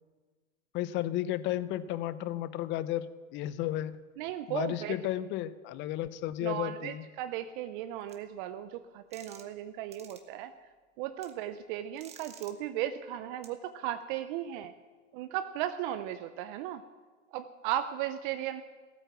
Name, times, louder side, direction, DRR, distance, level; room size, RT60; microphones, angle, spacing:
voice 1, 0.7-3.9 4.5-7.0, left 13 dB, 30° left, 15 dB, 0.6 m, -33 dB
voice 2, 4.2-5.0 6.4-10.5 11.0-14.7 15.1-16.9 17.3-18.6, right 12 dB, 40° right, 10 dB, 0.7 m, -36 dB
sound 1, 8.1-8.2 9.1-9.6 9.9-10.2 11.2-11.3 12.0-12.5 13.4-13.5, right 6 dB, 15° right, 1.3 m, -51 dB
16.5 x 9.0 x 7.1 m, 1.4 s
hypercardioid pair, 120°, 38 cm